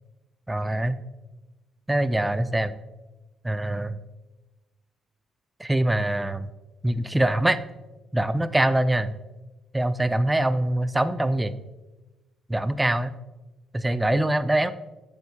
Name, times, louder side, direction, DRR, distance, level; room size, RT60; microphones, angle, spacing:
voice 1, 0.5-1.0 1.9-2.7 3.4-4.0 5.6-6.5 6.8-7.6 8.1-9.1 9.7-11.5 12.5-13.2 13.7-14.7, right 1 dB, 10° right, 12 dB, 0.3 m, -23 dB
8.0 x 4.3 x 2.8 m, 1.1 s
cardioid pair, 90°, 0 cm